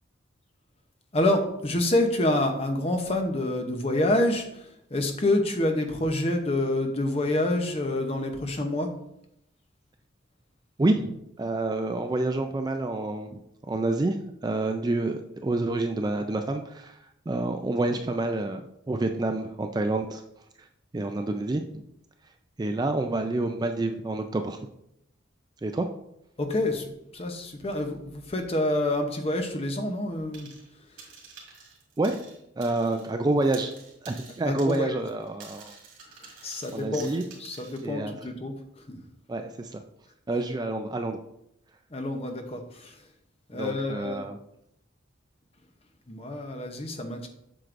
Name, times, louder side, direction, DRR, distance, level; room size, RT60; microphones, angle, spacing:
voice 1, 1.1-8.9 26.4-31.1 34.4-35.0 36.0-39.0 41.9-43.1 43.5-44.3 46.1-47.3, left 1 dB, 30° left, 5 dB, 0.7 m, -28 dB
voice 2, 10.8-13.4 13.7-17.0 17.3-18.6 18.9-20.2 20.6-20.7 20.9-21.8 22.6-24.6 25.6-25.9 32.0-32.2 32.6-33.7 34.0-35.7 36.7-37.2 37.8-38.1 39.3-39.8 40.3-41.2 43.5-44.3, right 2 dB, 20° right, 6 dB, 0.3 m, -28 dB
sound 1, 30.3-30.7 31.0-33.1 33.4-37.8, right 5 dB, 90° right, 2.0 m, -49 dB
7.6 x 6.4 x 2.5 m, 0.78 s
head